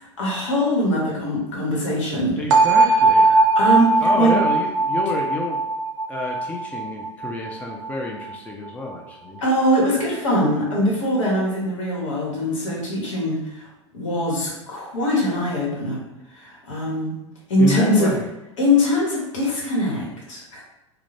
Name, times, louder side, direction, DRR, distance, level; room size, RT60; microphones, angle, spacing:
voice 1, 0.2-2.4 3.3-4.3 9.4-13.7 13.9-16.0 16.3-17.1 17.5-18.1 18.6-20.6, equal, 75° left, -3 dB, 1.1 m, -22 dB
voice 2, 2.4-3.4 4.0-5.6 6.1-9.4 17.6-18.2, left 2 dB, 10° left, -1 dB, 0.4 m, -29 dB
sound 1, 2.5-8.3, right 3 dB, 70° right, 0.5 m, -19 dB
2.4 x 2.1 x 3.1 m, 0.98 s
hypercardioid pair, 95°, 16 cm